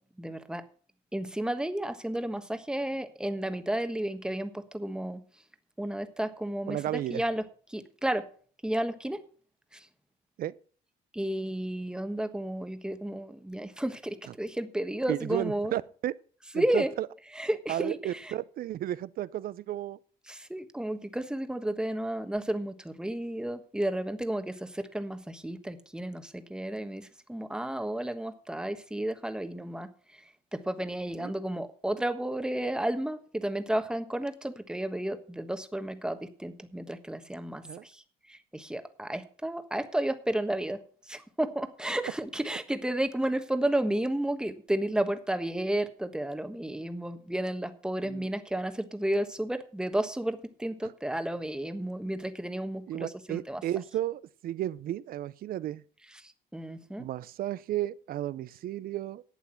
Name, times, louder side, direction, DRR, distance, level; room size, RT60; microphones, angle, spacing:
voice 1, 0.2-0.6 1.1-5.2 5.8-6.8 7.1-7.4 7.7-8.3 8.6-9.2 11.1-15.7 16.5-16.9 17.4-18.0 20.3-29.9 30.5-37.9 38.3-53.6 56.5-57.0, right 1 dB, 5° right, 1.3 m, -32 dB
voice 2, 6.7-7.2 10.4-10.5 14.3-14.4 15.1-16.1 16.5-17.1 17.7-20.0 31.2-31.4 37.6-37.8 48.0-48.3 50.8-50.9 52.9-55.8 57.0-59.2, right 13 dB, 60° right, 0.6 m, -33 dB
11.5 x 8.4 x 5.8 m
cardioid pair, 110°, 17 cm